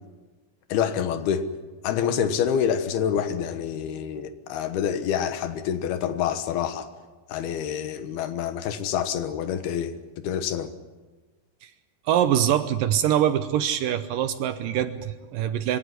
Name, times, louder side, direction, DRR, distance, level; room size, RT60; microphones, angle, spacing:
voice 1, 0.7-1.5 1.8-6.9 7.3-9.9 10.2-10.7, left 8 dB, 80° left, 10 dB, 3.2 m, -27 dB
voice 2, 12.1-15.8, right 10 dB, 75° right, 11 dB, 2.2 m, -24 dB
24.5 x 16.5 x 9.6 m, 1.3 s
omnidirectional pair, 4.5 m